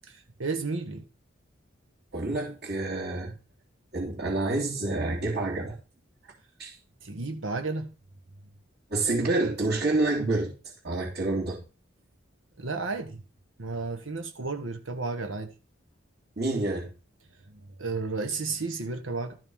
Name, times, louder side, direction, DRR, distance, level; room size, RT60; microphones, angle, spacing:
voice 1, 0.1-1.0 7.0-7.9 12.6-13.2 13.6-15.5 17.5-19.4, right 3 dB, 75° right, 1.1 m, -33 dB
voice 2, 2.1-3.3 3.9-5.8 6.6-6.7 8.9-10.5 10.8-11.6 16.4-16.9, right 2 dB, 55° right, 3.1 m, -28 dB
13.0 x 5.2 x 5.5 m
head